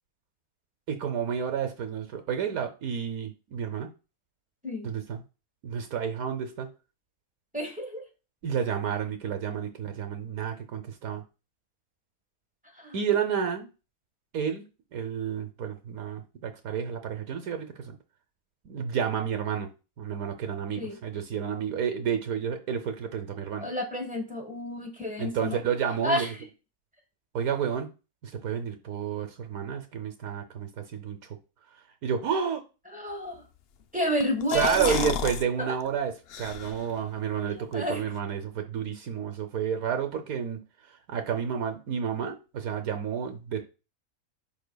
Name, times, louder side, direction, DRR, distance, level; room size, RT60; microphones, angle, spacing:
voice 1, 0.9-3.9 4.8-5.2 5.6-6.7 8.4-11.2 12.9-13.7 14.3-18.0 18.6-19.7 20.0-23.7 25.2-26.3 27.3-27.9 28.2-31.2 32.0-32.6 34.5-40.6 41.1-43.6, right 7 dB, 75° right, 7 dB, 1.2 m, -30 dB
voice 2, 7.5-8.0 12.7-12.9 20.8-21.0 23.6-25.6 26.0-26.3 32.9-33.4 33.9-35.0 35.6-35.8 37.5-38.0, equal, 5° right, 3 dB, 1.2 m, -30 dB
sound 1, 34.2-35.4 35.8-35.9 36.3-37.0, left 7 dB, 70° left, 0.6 m, -31 dB
10.5 x 4.1 x 2.3 m, 0.31 s
omnidirectional pair, 1.5 m